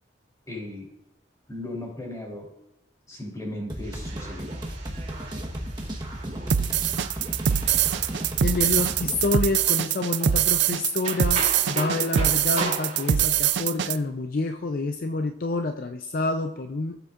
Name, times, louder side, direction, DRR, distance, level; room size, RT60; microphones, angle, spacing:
voice 1, 0.5-0.8 1.5-2.5 3.1-4.5, left 1 dB, 20° left, -1 dB, 3.2 m, -36 dB
sound 1, 3.7-9.3, right 1 dB, 25° right, 1.2 m, -34 dB
sound 2, 3.8-13.3, right 2 dB, 40° right, 3.0 m, -38 dB
sound 3, 6.5-14.0, right 9 dB, 75° right, 0.4 m, -23 dB
voice 2, 8.4-17.0, left 3 dB, 50° left, 6 dB, 0.5 m, -28 dB
16.5 x 8.0 x 2.5 m, 0.90 s
head